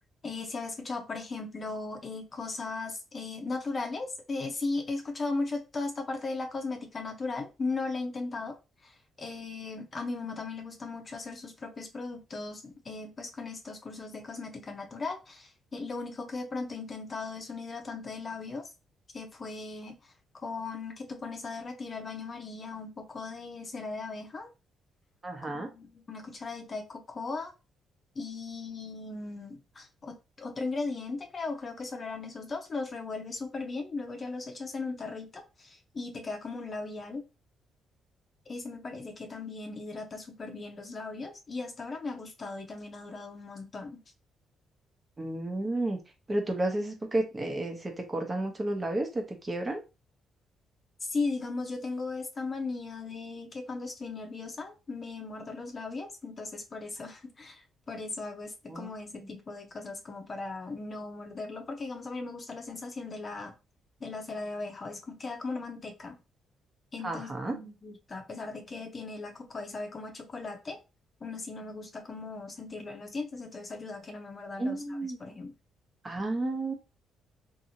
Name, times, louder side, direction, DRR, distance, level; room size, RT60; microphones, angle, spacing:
voice 1, 0.2-8.6 8.8-18.7 19.1-24.5 25.4-27.5 28.1-37.3 38.5-44.0 51.0-63.5 64.0-66.1 66.9-70.8 71.2-74.8 75.2-75.5, left 3 dB, 35° left, 0.7 m, -37 dB
voice 2, 25.2-25.7 45.2-46.0 46.3-49.8 58.7-58.9 59.2-59.3 67.0-67.5 74.6-75.2 76.0-76.7, right 2 dB, 25° right, 0.8 m, -32 dB
2.7 x 2.7 x 2.7 m
cardioid pair, 90°, 0 cm